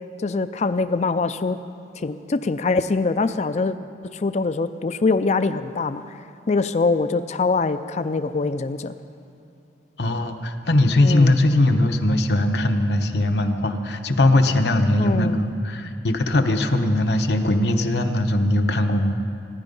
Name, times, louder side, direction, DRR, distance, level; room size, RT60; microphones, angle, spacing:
voice 1, 0.2-1.6 2.0-3.8 4.1-6.0 6.5-8.9 11.0-11.4 15.0-15.4, left 3 dB, 40° left, 12 dB, 0.4 m, -23 dB
voice 2, 10.0-19.2, left 1 dB, 70° left, 5 dB, 1.0 m, -20 dB
24.5 x 10.5 x 5.4 m, 2.7 s
head